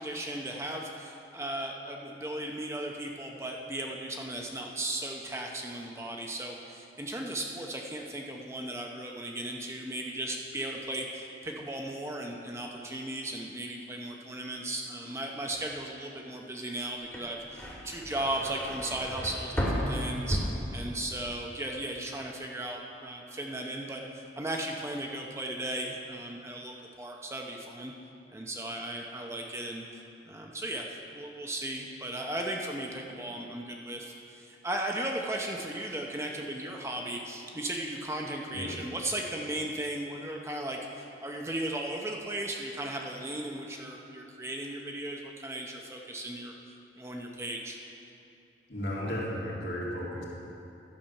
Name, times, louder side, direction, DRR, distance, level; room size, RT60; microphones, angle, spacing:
voice 1, 0.0-27.9 28.3-29.8 30.3-30.8 31.1-46.5 47.0-47.8, right 1 dB, 15° right, 0 dB, 0.7 m, -36 dB
sound 1, 17.0-21.3 21.6-22.2, equal, 10° left, 1.5 m, -34 dB
voice 2, 48.7-50.2, equal, 70° left, -5 dB, 2.3 m, -34 dB
11.5 x 7.4 x 5.4 m, 2.7 s
head